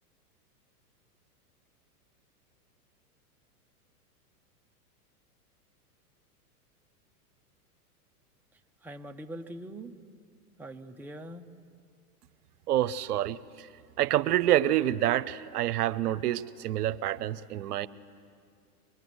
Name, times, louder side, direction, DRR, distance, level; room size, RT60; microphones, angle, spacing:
voice 1, 8.8-9.9 10.6-11.5, right 1 dB, 5° right, 3 dB, 0.9 m, -42 dB
voice 2, 12.7-13.7 14.0-17.9, right 12 dB, 75° right, 14 dB, 0.9 m, -27 dB
24.0 x 22.0 x 9.5 m, 2.3 s
hypercardioid pair, 115°, 46 cm